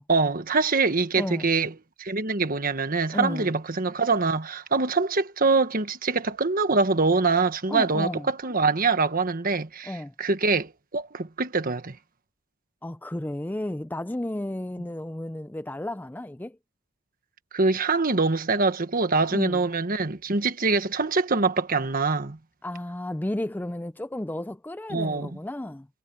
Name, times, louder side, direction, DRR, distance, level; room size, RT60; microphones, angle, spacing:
voice 1, 0.1-1.7 2.0-12.0 17.5-22.4 24.9-25.3, right 4 dB, 40° right, 1.4 m, -24 dB
voice 2, 1.2-1.5 3.1-3.5 7.7-8.3 9.9-10.1 12.8-16.6 19.3-19.6 22.6-25.9, left 1 dB, 10° left, 0.4 m, -32 dB
head